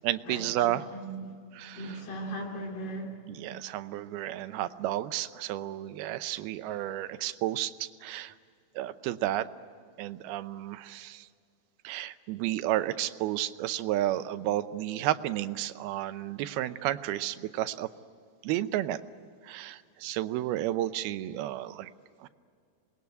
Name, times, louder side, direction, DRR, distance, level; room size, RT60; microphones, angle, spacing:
voice 1, 0.0-0.9 1.5-2.0 3.3-8.3 8.8-9.5 10.0-11.3 11.8-17.9 18.4-19.0 19.4-21.9 22.2-22.3, right 14 dB, 90° right, 12 dB, 2.7 m, -32 dB
voice 2, 0.9-1.3 1.8-3.2, right 1 dB, 75° left, 1 dB, 4.4 m, -37 dB
27.0 x 20.5 x 9.6 m, 2.3 s
omnidirectional pair, 4.3 m